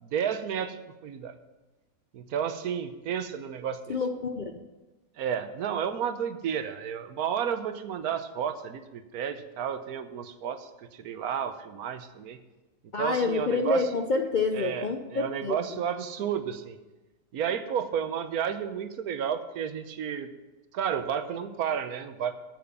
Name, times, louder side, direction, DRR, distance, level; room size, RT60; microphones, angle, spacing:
voice 1, 0.0-0.8 1.0-1.3 2.1-4.0 5.2-12.4 13.0-13.9 14.5-16.8 17.3-20.3 20.7-22.3, right 8 dB, 75° right, 10 dB, 1.3 m, -32 dB
voice 2, 3.9-4.4 12.9-15.8, left 3 dB, 55° left, 5 dB, 0.5 m, -28 dB
8.7 x 7.8 x 6.9 m, 1.1 s
omnidirectional pair, 1.6 m